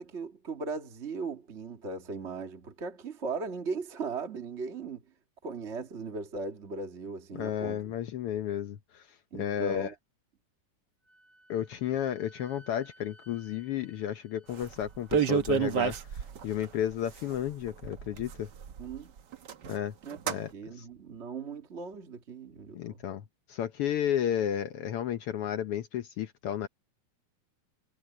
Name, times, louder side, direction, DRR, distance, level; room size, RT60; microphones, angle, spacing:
voice 1, 0.0-5.0 5.4-7.8 9.3-9.9 18.8-19.1 20.0-20.2 20.5-23.0, right 4 dB, 30° right, 1.5 m, -38 dB
voice 2, 7.3-9.1 9.3-9.9 11.5-18.5 19.7-19.9 20.3-20.9 22.7-26.7, left 10 dB, 75° left, 1.3 m, -33 dB
Wind instrument woodwind instrument, 11.0-15.5, right 1 dB, 10° left, 7.1 m, -59 dB
sound 1, 14.6-14.7 14.9-16.7 17.3-17.4 17.7-19.0 19.3-19.8 20.1-20.4, right 8 dB, 85° right, 0.9 m, -29 dB
omnidirectional pair, 3.6 m